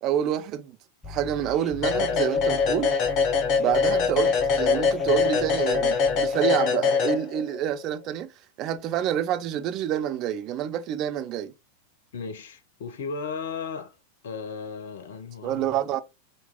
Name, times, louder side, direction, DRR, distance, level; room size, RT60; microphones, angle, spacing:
voice 1, 0.0-0.8 1.0-2.9 3.6-8.3 8.6-11.5 15.4-16.0, right 10 dB, 35° right, 0.4 m, -27 dB
sound 1, 1.0-6.4, left 5 dB, 10° left, 0.6 m, -42 dB
sound 2, 1.8-7.6, left 5 dB, 35° left, 1.0 m, -23 dB
voice 2, 12.1-14.0 14.2-15.8, left 5 dB, 60° left, 0.5 m, -35 dB
2.8 x 2.6 x 3.5 m
figure-of-eight pair, 90°, 0 cm